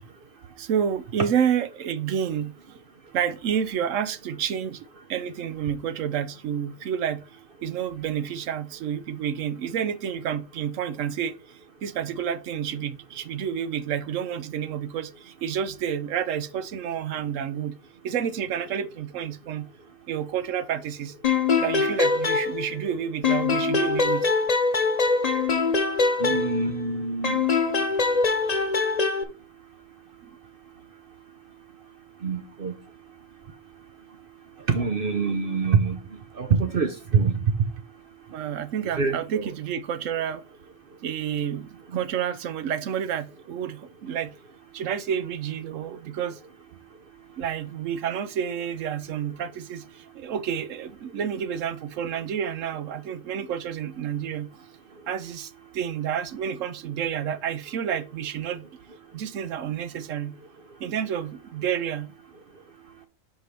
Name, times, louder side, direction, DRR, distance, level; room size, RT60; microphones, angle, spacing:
voice 1, 0.6-2.8 3.1-7.2 7.6-17.8 18.0-19.7 20.1-21.1 21.6-24.3 30.2-30.3 38.3-40.4 41.0-44.3 44.7-46.4 47.4-54.6 55.1-58.7 59.1-60.4 60.8-62.1, right 8 dB, 80° right, 1.1 m, -29 dB
sound 1, 21.2-22.9 23.2-26.9 27.2-29.2, left 4 dB, 40° left, 0.7 m, -23 dB
voice 2, 26.2-27.6 32.2-32.8 34.6-36.0 36.3-37.5 38.9-39.5 41.9-42.0, right 5 dB, 50° right, 0.9 m, -25 dB
5.1 x 5.0 x 5.8 m
omnidirectional pair, 1.3 m